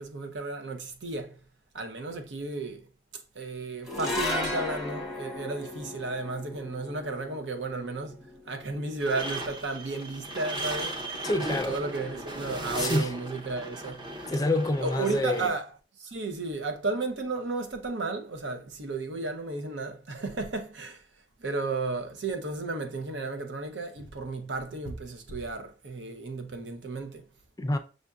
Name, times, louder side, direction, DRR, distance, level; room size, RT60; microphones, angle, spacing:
voice 1, 0.0-1.3 1.7-2.9 3.3-8.2 8.5-11.1 11.7-14.0 14.8-15.6 16.0-21.0 21.4-27.2, right 3 dB, 90° right, 0.7 m, -33 dB
sound 1, 3.8-10.3, left 1 dB, 5° right, 0.9 m, -36 dB
sound 2, 9.0-15.5, right 1 dB, 25° right, 0.7 m, -37 dB
voice 2, 11.2-11.8 12.8-13.1 14.3-15.6 27.6-27.8, left 2 dB, 20° left, 0.4 m, -27 dB
6.4 x 2.6 x 2.3 m
head